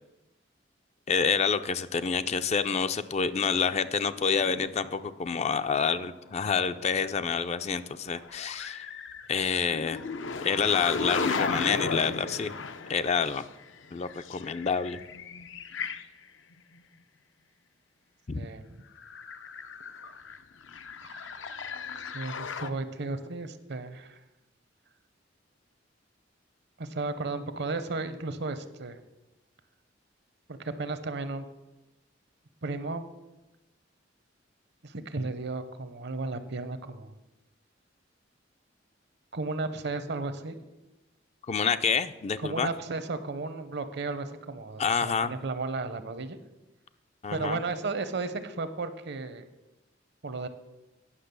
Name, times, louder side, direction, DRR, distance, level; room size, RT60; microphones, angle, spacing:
voice 1, 1.1-8.9 9.3-10.0 10.4-12.5 12.9-13.5 13.9-15.0 18.3-18.5 41.5-42.7 44.8-45.3 47.2-47.6, left 5 dB, 35° left, 11 dB, 0.4 m, -28 dB
sound 1, 3.3-5.1 6.2-7.1 8.1-16.0 16.5-16.6 19.0-22.7, left 5 dB, 75° left, 0.6 m, -36 dB
voice 2, 18.3-18.8 21.0-21.3 22.1-24.2 26.8-29.0 30.6-31.5 32.6-33.1 34.8-37.1 39.3-40.6 42.4-46.4 47.3-49.5 50.2-50.5, right 3 dB, 60° right, 12 dB, 0.8 m, -34 dB
9.9 x 6.2 x 6.8 m, 1.0 s
head